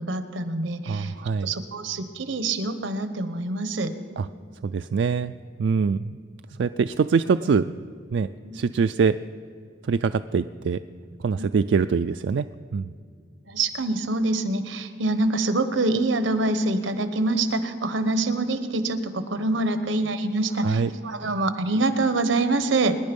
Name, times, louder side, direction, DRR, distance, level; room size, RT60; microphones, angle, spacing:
voice 1, 0.0-1.1 1.4-3.9 8.4-8.6 11.4-11.5 13.5-23.0, right 2 dB, 85° right, 10 dB, 1.1 m, -25 dB
voice 2, 0.9-1.5 4.2-4.3 4.6-5.3 5.6-6.2 6.6-7.7 8.1-8.3 8.5-9.2 9.8-10.8 11.2-12.4 12.7-12.9 20.6-20.9, right 5 dB, 65° right, 10 dB, 0.3 m, -23 dB
24.0 x 10.5 x 5.3 m, 2.2 s
head